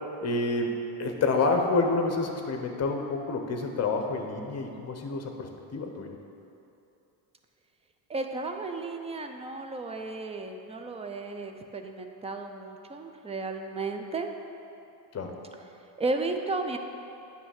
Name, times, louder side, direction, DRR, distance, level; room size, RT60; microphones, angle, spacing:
voice 1, 0.2-6.2 15.1-15.4, left 3 dB, 35° left, 4 dB, 0.8 m, -28 dB
voice 2, 8.1-14.3 16.0-16.8, right 3 dB, 15° right, 5 dB, 0.3 m, -34 dB
8.8 x 3.4 x 6.4 m, 2.8 s
cardioid pair, 115°, 46 cm